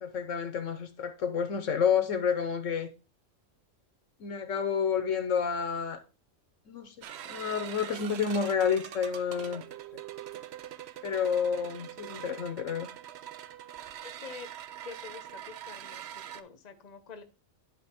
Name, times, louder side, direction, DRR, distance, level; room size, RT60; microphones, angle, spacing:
voice 1, 0.0-2.9 4.2-6.0 6.7-9.6 11.0-12.9, left 6 dB, 70° left, 1.2 m, -30 dB
sound 1, 7.0-16.4, right 11 dB, 65° right, 0.7 m, -44 dB
voice 2, 14.0-14.5 14.8-17.2, left 5 dB, 35° left, 0.9 m, -47 dB
10.5 x 3.7 x 4.3 m
omnidirectional pair, 1.4 m